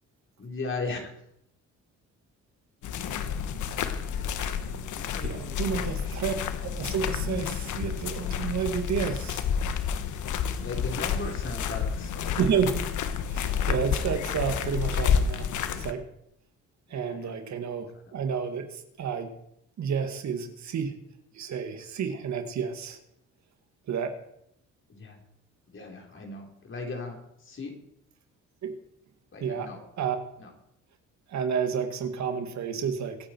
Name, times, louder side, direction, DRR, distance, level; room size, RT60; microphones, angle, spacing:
voice 1, 0.4-1.1 4.9-6.2 10.6-12.4 16.9-17.3 18.0-18.1 24.9-25.2 25.7-27.7 29.3-29.8 30.4-30.5, left 3 dB, 40° left, 2 dB, 4.2 m, -38 dB
sound 1, 2.8-15.9, left 7 dB, 75° left, 1.3 m, -30 dB
voice 2, 5.2-6.3 6.6-9.4 12.4-12.8 13.3-15.5 15.8-16.0 16.9-19.3 19.8-21.0 21.3-23.0 23.9-24.1 28.6-28.8 29.4-29.7 30.0-30.2 31.3-33.2, right 7 dB, 65° right, 7 dB, 2.1 m, -30 dB
24.5 x 9.0 x 4.6 m, 0.75 s
cardioid pair, 90°, 30 cm